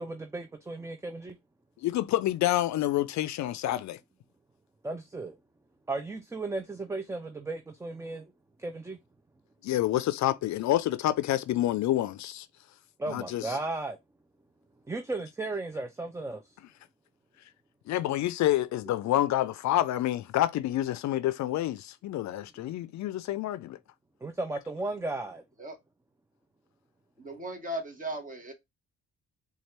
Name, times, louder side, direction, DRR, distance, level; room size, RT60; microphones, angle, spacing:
voice 1, 0.0-1.4 4.8-5.3 5.9-8.3 8.6-9.0 13.0-14.0 14.9-16.6 24.2-25.4, right 2 dB, 10° right, 0.4 m, -35 dB
voice 2, 1.8-4.0 9.6-12.5 13.1-13.6 17.9-23.8, left 14 dB, 65° left, 0.5 m, -28 dB
voice 3, 27.2-28.5, right 1 dB, 25° right, 1.3 m, -37 dB
4.2 x 2.4 x 3.2 m
cardioid pair, 90°, 30 cm